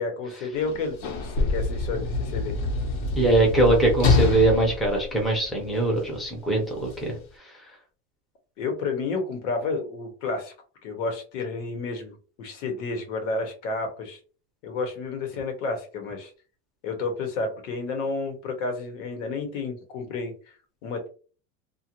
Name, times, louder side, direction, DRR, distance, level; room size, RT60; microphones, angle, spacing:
voice 1, 0.0-2.5 8.6-10.5 10.8-14.2 14.6-16.3 16.8-20.3 20.8-21.1, left 3 dB, 85° left, 4 dB, 1.1 m, -31 dB
Sliding door / Slam, 0.6-6.0 6.9-7.0, left 3 dB, 65° left, 1.0 m, -26 dB
voice 2, 3.2-7.2, right 2 dB, ahead, -1 dB, 0.6 m, -22 dB
2.5 x 2.4 x 2.9 m, 0.38 s
supercardioid pair, 155°, 36 cm